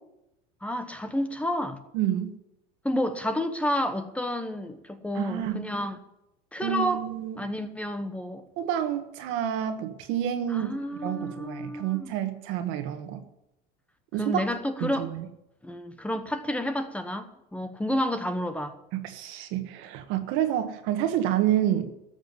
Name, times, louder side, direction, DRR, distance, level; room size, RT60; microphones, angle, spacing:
voice 1, 0.6-1.8 2.8-6.0 6.5-7.1 7.4-8.5 10.5-12.2 14.2-15.1 15.6-18.8, left 1 dB, 5° left, 1.0 m, -30 dB
voice 2, 1.9-2.3 5.1-5.6 6.6-7.4 8.6-10.8 11.0-13.2 14.1-14.5 14.8-15.3 18.9-21.9, right 11 dB, 70° right, 1.6 m, -28 dB
13.5 x 7.2 x 9.5 m
supercardioid pair, 130°, 21 cm